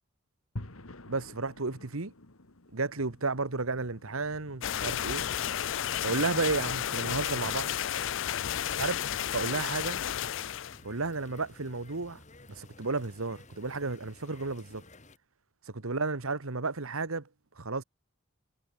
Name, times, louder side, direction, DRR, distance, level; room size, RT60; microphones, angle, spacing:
sound 1, 0.6-10.8, left 1 dB, 75° left, 2.4 m, -51 dB
voice 1, 1.1-2.1 2.7-5.3 6.0-7.7 8.8-10.0 10.8-12.2 12.5-14.8 15.7-17.3 17.6-17.8, right 3 dB, 75° right, 1.4 m, -32 dB
sound 2, 4.6-10.8, left 10 dB, 60° left, 0.4 m, -32 dB
sound 3, 5.2-15.2, left 2 dB, 35° left, 3.3 m, -53 dB
head